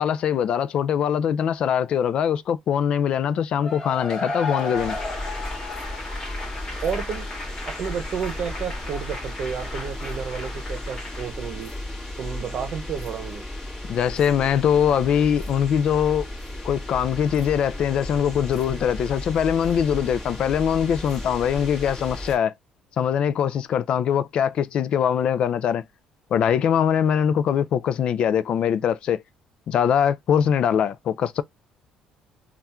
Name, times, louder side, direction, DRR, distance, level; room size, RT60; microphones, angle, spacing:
voice 1, 0.0-5.0 13.9-16.3 16.6-22.5 23.0-25.8 26.3-29.2 29.7-31.4, left 8 dB, 55° left, 0.4 m, -22 dB
Cheering / Applause / Crowd, 3.6-11.3, left 3 dB, 35° left, 1.7 m, -34 dB
sound 1, 4.7-22.4, left 1 dB, 15° left, 1.7 m, -35 dB
voice 2, 6.8-7.3 7.6-11.7 12.2-13.4, right 7 dB, 50° right, 0.8 m, -31 dB
3.5 x 2.4 x 4.2 m
cardioid pair, 125°, 2 cm